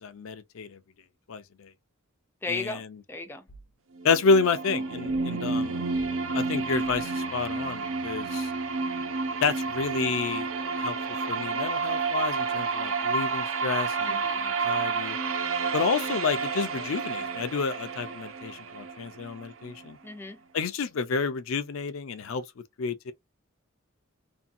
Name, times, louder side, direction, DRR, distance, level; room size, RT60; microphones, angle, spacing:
voice 1, 0.0-0.8 1.3-1.7 2.5-2.9 4.0-5.9 6.3-8.5 9.4-10.5 10.8-15.2 15.7-20.0 20.5-22.4 22.8-23.1, left 5 dB, 70° left, 0.4 m, -29 dB
voice 2, 2.4-3.5 5.3-5.4 14.1-14.4 20.0-20.4, left 3 dB, 10° left, 0.3 m, -36 dB
sound 1, 3.5-3.8 5.1-5.4 5.9-6.2 6.8-7.2, right 2 dB, 90° left, 0.9 m, -51 dB
sound 2, 4.0-19.9, right 4 dB, 65° right, 0.5 m, -30 dB
2.7 x 2.6 x 2.5 m
head